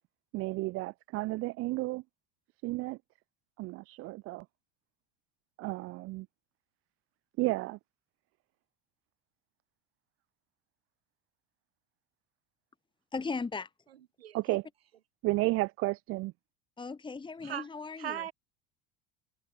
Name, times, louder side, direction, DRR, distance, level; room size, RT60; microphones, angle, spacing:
voice 1, 0.3-2.0 2.6-3.0 3.6-4.5 5.6-6.3 7.4-7.8 14.3-14.7 15.2-16.3, right 20 dB, 50° right, 0.6 m, -32 dB
voice 2, 13.1-13.7 14.5-14.6 16.8-18.2, left 4 dB, 15° left, 1.7 m, -37 dB
voice 3, 18.0-18.3, right 11 dB, 90° right, 3.8 m, -37 dB
hypercardioid pair, 85°, 29 cm